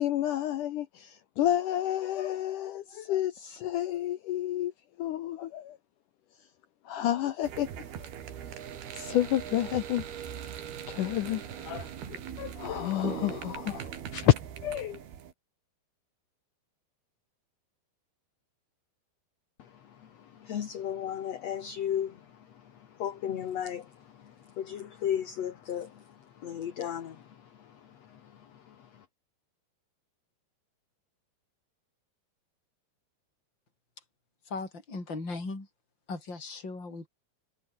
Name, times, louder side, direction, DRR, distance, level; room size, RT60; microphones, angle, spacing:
voice 1, 0.0-4.7 5.0-5.8 6.9-7.7 8.9-10.0 10.9-14.4 14.6-15.0, left 13 dB, 75° left, 1.9 m, -30 dB
sound 1, 7.4-15.3, right 9 dB, 65° right, 4.5 m, -40 dB
voice 2, 20.4-22.2 23.0-23.9 24.6-25.9 26.4-27.2, left 9 dB, 50° left, 2.3 m, -33 dB
voice 3, 34.4-35.7 36.1-37.1, left 3 dB, 25° left, 7.4 m, -38 dB
omnidirectional pair, 4.8 m